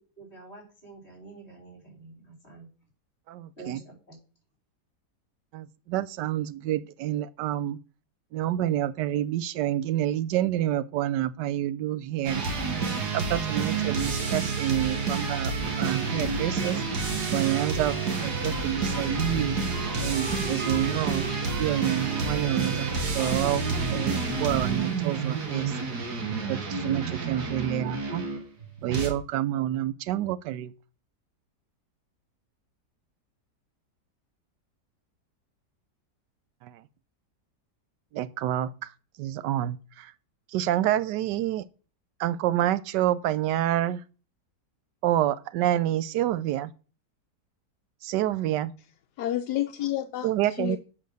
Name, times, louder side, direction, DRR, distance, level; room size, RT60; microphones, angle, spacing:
voice 1, 0.2-2.7 3.6-4.2, right 3 dB, 35° left, 4.9 m, -47 dB
voice 2, 3.3-3.8 5.5-7.8 8.3-12.4 13.1-16.8 17.3-19.6 20.0-21.3 21.6-22.9 23.1-25.8 26.5-28.2 28.8-30.7 36.6-36.8 38.1-38.9 39.2-40.1 40.5-41.6 42.2-44.0 45.0-46.7 48.0-48.7 50.2-50.8, right 13 dB, 85° right, 1.2 m, -28 dB
sound 1, 12.2-29.1, right 4 dB, 70° right, 2.3 m, -29 dB
Wind instrument woodwind instrument, 17.4-25.4, right 3 dB, 35° right, 1.6 m, -42 dB
voice 3, 49.2-50.8, left 13 dB, 75° left, 1.1 m, -30 dB
7.4 x 5.6 x 6.4 m
omnidirectional pair, 1.8 m